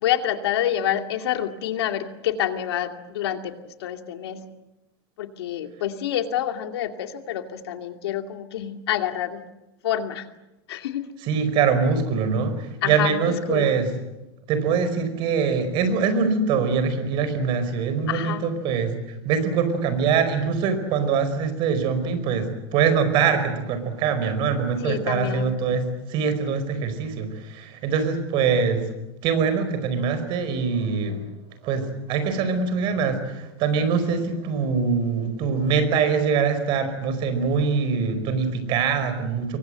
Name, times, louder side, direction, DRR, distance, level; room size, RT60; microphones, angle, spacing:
voice 1, 0.0-3.5 3.8-4.4 5.2-9.4 9.8-10.3 10.7-11.1 12.8-13.7 18.1-18.5 24.8-25.5, left 11 dB, 80° left, 6 dB, 2.5 m, -27 dB
voice 2, 11.2-13.9 14.5-28.9 29.2-31.2 31.6-39.6, right 5 dB, 40° right, 10 dB, 4.8 m, -23 dB
26.5 x 23.5 x 7.7 m, 0.98 s
supercardioid pair, 160°, 13 cm